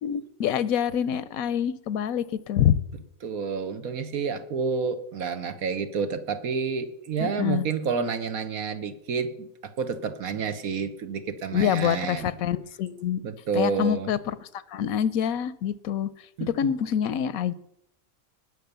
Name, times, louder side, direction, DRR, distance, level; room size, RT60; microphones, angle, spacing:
voice 1, 0.0-2.8 7.2-7.6 11.5-13.2 13.5-14.4 14.7-16.1 16.4-17.5, left 9 dB, 85° left, 18 dB, 1.1 m, -26 dB
voice 2, 3.2-12.3 13.2-14.1 16.4-16.7, right 5 dB, 90° right, 10 dB, 1.6 m, -29 dB
19.5 x 6.5 x 6.8 m, 0.76 s
omnidirectional pair, 1.4 m